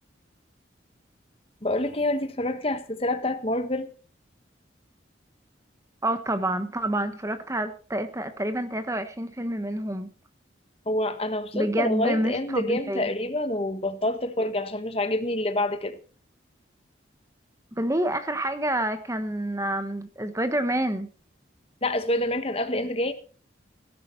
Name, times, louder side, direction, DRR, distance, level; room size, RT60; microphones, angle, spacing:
voice 1, 1.6-3.9 10.9-16.0 21.8-23.1, left 1 dB, 30° left, 1.3 m, -27 dB
voice 2, 6.0-10.1 11.5-13.1 17.7-21.1, right 1 dB, 15° right, 1.1 m, -28 dB
17.5 x 11.0 x 4.5 m
head